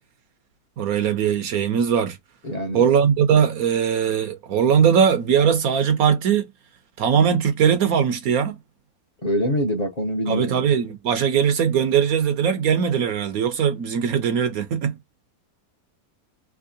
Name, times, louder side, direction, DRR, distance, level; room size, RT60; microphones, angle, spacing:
voice 1, 0.8-2.2 2.7-6.5 7.0-8.6 10.3-15.0, right 7 dB, 65° right, 1.0 m, -20 dB
voice 2, 2.4-2.9 9.2-10.6, equal, 35° left, 0.7 m, -24 dB
3.6 x 2.9 x 2.7 m
omnidirectional pair, 1.8 m